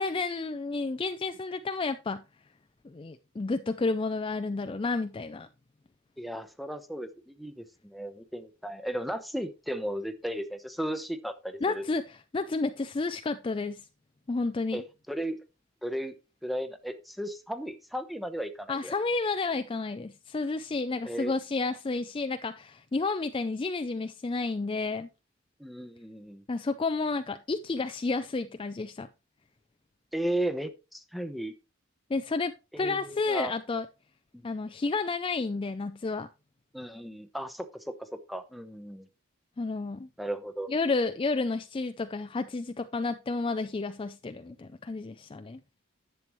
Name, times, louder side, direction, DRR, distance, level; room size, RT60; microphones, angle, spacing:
voice 1, 0.0-2.2 2.8-5.5 11.6-13.9 14.3-14.8 18.7-25.1 26.5-29.1 32.1-33.9 34.4-36.3 39.6-40.1 40.7-45.6, left 3 dB, 25° left, 0.4 m, -31 dB
voice 2, 6.2-11.9 14.7-15.4 15.8-16.1 16.4-18.9 21.1-21.3 25.6-26.4 30.1-31.5 32.7-33.5 34.3-34.5 36.7-39.1 40.2-40.7, right 1 dB, ahead, 0.8 m, -35 dB
11.0 x 7.7 x 3.1 m
head